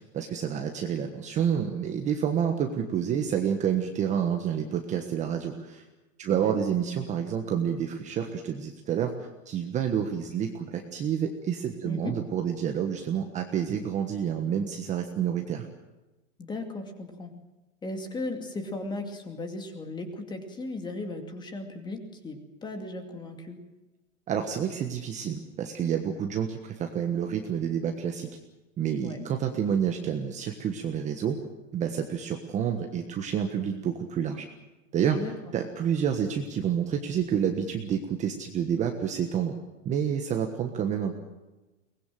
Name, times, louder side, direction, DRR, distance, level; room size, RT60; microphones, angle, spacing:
voice 1, 0.1-5.8 6.2-15.7 24.3-28.3 28.8-31.4 31.7-34.5 34.9-35.2 35.5-39.5 39.8-41.1, right 8 dB, 20° right, 4 dB, 1.4 m, -29 dB
voice 2, 11.8-12.2 16.4-17.3 17.8-23.6 29.0-29.3 35.2-35.3, left 2 dB, 10° left, 5 dB, 2.4 m, -36 dB
23.0 x 20.0 x 7.7 m, 1.1 s
hypercardioid pair, 150°, 38 cm